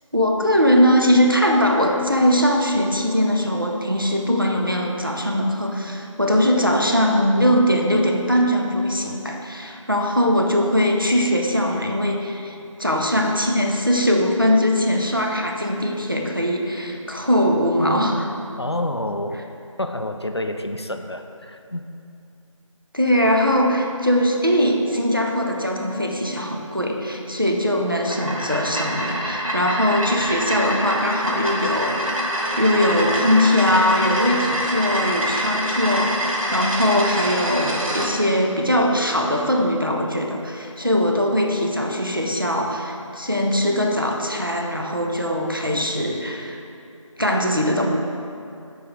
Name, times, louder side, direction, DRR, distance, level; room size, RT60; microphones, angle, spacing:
voice 1, 0.1-18.3 22.9-32.0 32.5-46.6 47.2-47.9, equal, 40° right, 1 dB, 0.5 m, -21 dB
voice 2, 18.6-19.4 19.8-21.8, left 1 dB, 50° left, 6 dB, 0.4 m, -28 dB
sound 1, 28.0-38.1, equal, 75° right, 1.3 m, -25 dB
6.8 x 4.6 x 3.8 m, 2.6 s
figure-of-eight pair, 175°, 17 cm